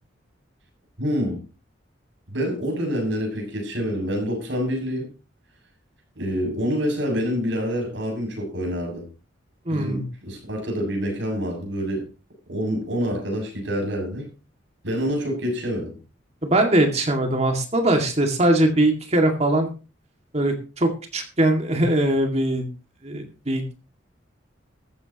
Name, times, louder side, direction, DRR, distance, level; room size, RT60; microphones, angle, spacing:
voice 1, 1.0-1.4 2.3-5.1 6.2-9.0 9.7-12.1 12.5-14.3 14.8-15.9, equal, 70° right, 7.3 m, -27 dB
voice 2, 9.7-10.0 16.4-19.7 20.3-22.7 23.0-23.7, right 1 dB, 35° right, 2.3 m, -21 dB
14.5 x 14.0 x 3.0 m
head